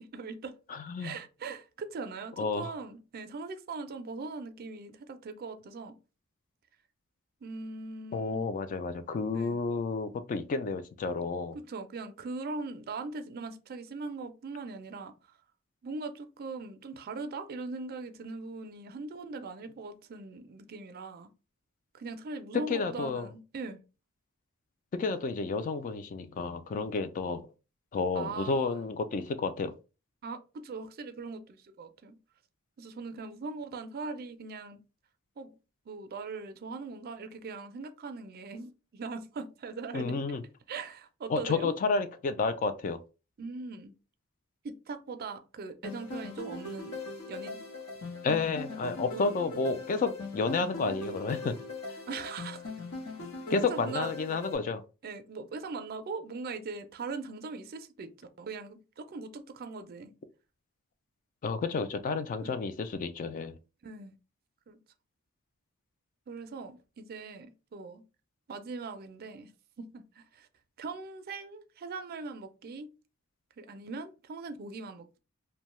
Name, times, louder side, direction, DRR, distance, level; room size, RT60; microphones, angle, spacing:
voice 1, 0.0-0.6 1.0-6.0 7.4-8.5 9.3-9.6 11.5-15.1 15.8-21.3 21.9-23.8 28.1-28.9 30.2-32.2 32.8-34.8 35.4-35.5 35.9-40.2 40.7-41.7 43.4-43.9 44.6-46.9 47.3-47.6 49.2-49.3 52.1-52.7 53.7-54.1 55.0-60.1 62.4-62.5 63.8-64.1 64.7-64.8 66.3-68.0 68.5-69.5 69.8-70.5 70.8-72.9 73.6-75.2, right 4 dB, 45° right, 0.4 m, -40 dB
voice 2, 0.7-1.2 2.4-2.7 8.1-11.6 22.5-23.3 24.9-27.5 27.9-29.7 39.9-40.4 41.3-43.0 48.2-51.5 53.5-54.8 61.4-63.6, left 4 dB, 40° left, 0.3 m, -31 dB
sound 1, 45.8-54.6, left 2 dB, 70° left, 0.9 m, -40 dB
2.6 x 2.2 x 3.0 m
head